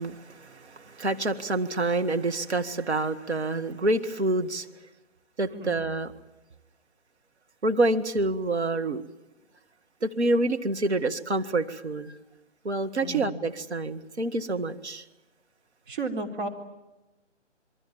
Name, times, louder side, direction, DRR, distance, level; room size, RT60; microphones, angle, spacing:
voice 1, 0.0-4.7 5.4-6.1 7.6-9.0 10.0-12.2 12.6-15.0, right 2 dB, 60° right, 7 dB, 2.0 m, -27 dB
voice 2, 15.9-16.5, right 2 dB, 45° right, 2 dB, 3.8 m, -33 dB
27.5 x 22.5 x 7.4 m, 1.0 s
figure-of-eight pair, 150°, 37 cm